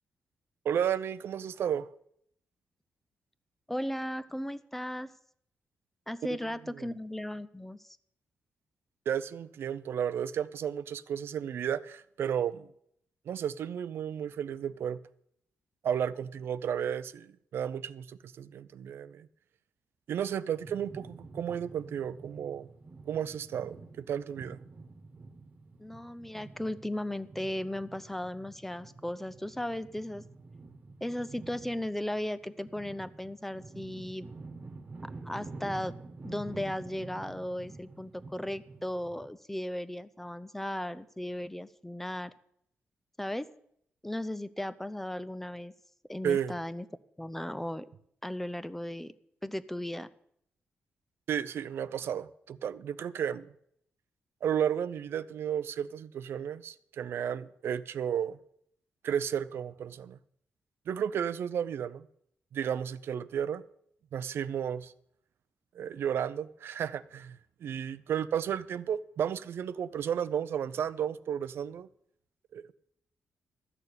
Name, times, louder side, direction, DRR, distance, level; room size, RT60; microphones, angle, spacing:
voice 1, 0.6-1.9 9.1-12.7 13.3-15.0 15.8-19.3 20.1-22.7 23.1-24.6 46.2-46.5 51.3-53.5 54.4-58.4 59.0-60.2 60.9-62.0 62.5-63.6 64.1-64.9 65.7-71.9 72.5-72.7, right 9 dB, 70° right, 0.5 m, -33 dB
voice 2, 3.7-5.2 6.1-8.0 25.8-30.2 31.0-34.3 35.0-35.9 36.2-42.3 43.2-43.5 44.0-45.7 46.1-46.9 47.2-47.9 48.2-49.1 49.4-50.1, left 1 dB, 5° left, 0.5 m, -36 dB
sound 1, 20.5-39.3, right 3 dB, 40° right, 1.4 m, -48 dB
13.0 x 6.8 x 8.3 m
cardioid pair, 120°, 4 cm